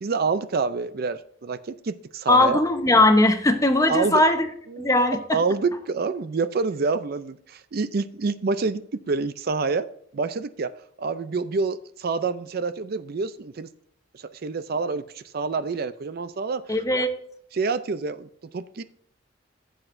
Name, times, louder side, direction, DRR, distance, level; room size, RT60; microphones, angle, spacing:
voice 1, 0.0-2.6 3.9-4.2 4.7-4.9 5.3-9.9 10.1-10.7 11.0-13.7 14.1-16.6 17.5-18.8, right 4 dB, 55° right, 12 dB, 0.5 m, -27 dB
voice 2, 2.3-4.5 4.8-5.4 16.7-17.1, left 2 dB, 15° left, 7 dB, 0.9 m, -19 dB
15.0 x 7.9 x 2.6 m, 0.67 s
head